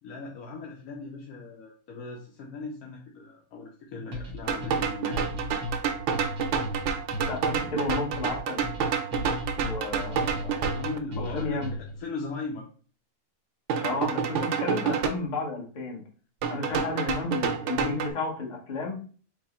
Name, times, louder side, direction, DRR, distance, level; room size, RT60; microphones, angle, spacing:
voice 1, 0.0-5.3 10.6-11.6 11.9-12.7 16.6-16.9 17.8-18.1, left 3 dB, 70° left, -1 dB, 1.1 m, -38 dB
sound 1, 4.1-12.0, left 1 dB, 90° right, 1.7 m, -36 dB
sound 2, 4.5-11.0 13.7-15.1 16.4-18.1, right 6 dB, 65° right, 0.7 m, -29 dB
voice 2, 7.3-8.6 9.5-10.7 11.2-11.7 13.8-16.0 16.5-19.0, left 3 dB, 35° left, 0 dB, 0.9 m, -32 dB
4.7 x 2.0 x 4.1 m, 0.41 s
omnidirectional pair, 1.6 m